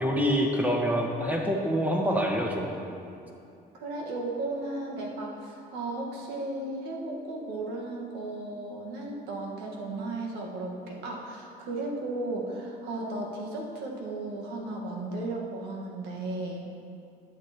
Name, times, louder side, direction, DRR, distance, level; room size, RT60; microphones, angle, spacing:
voice 1, 0.0-2.7, equal, 10° right, 0 dB, 1.3 m, -26 dB
voice 2, 3.7-16.6, right 2 dB, 90° right, -1 dB, 1.4 m, -35 dB
11.5 x 8.0 x 2.9 m, 2.6 s
cardioid pair, 110°, 17 cm